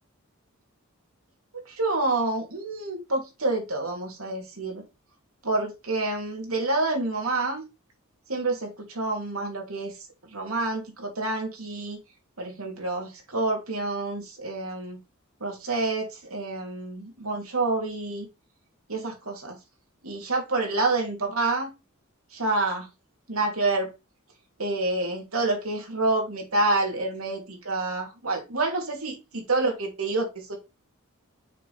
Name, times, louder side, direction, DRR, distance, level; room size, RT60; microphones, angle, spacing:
voice 1, 1.6-4.8 5.4-7.6 8.3-9.9 10.3-12.0 12.4-15.0 15.4-18.3 18.9-19.6 20.0-21.7 22.3-22.9 23.3-23.9 24.6-30.6, right 2 dB, 90° right, 2.9 m, -28 dB
6.5 x 5.2 x 4.2 m
head